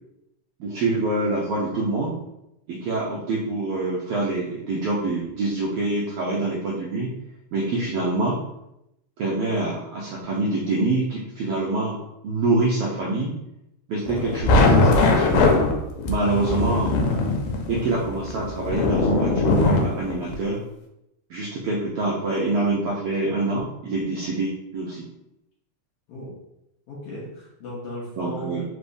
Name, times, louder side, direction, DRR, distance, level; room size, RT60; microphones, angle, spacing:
voice 1, 0.6-2.2 2.7-7.1 7.5-8.4 9.2-12.0 12.2-13.3 13.9-15.5 16.1-16.9 17.7-20.6 21.3-25.1 28.2-28.6, right 2 dB, 80° right, -4 dB, 1.3 m, -25 dB
sound 1, 14.1-20.4, left 3 dB, 90° left, 2.1 m, -21 dB
voice 2, 16.2-16.5 26.1-26.3 26.9-28.6, equal, 65° left, -6 dB, 1.7 m, -35 dB
4.7 x 3.4 x 2.6 m, 0.84 s
omnidirectional pair, 3.4 m